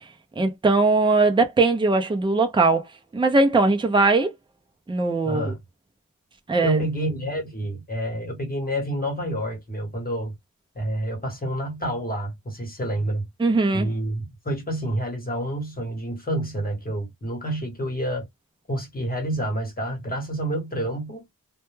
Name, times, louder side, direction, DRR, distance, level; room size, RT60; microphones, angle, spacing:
voice 1, 0.4-2.8 3.1-4.3 4.9-5.5 6.5-6.8 13.4-13.9, right 3 dB, 15° right, 0.4 m, -20 dB
voice 2, 5.2-5.6 6.6-10.4 10.7-13.3 13.7-18.2 18.7-21.2, right 1 dB, 25° left, 1.1 m, -28 dB
2.2 x 2.1 x 3.0 m
wide cardioid pair, 175°, 34 cm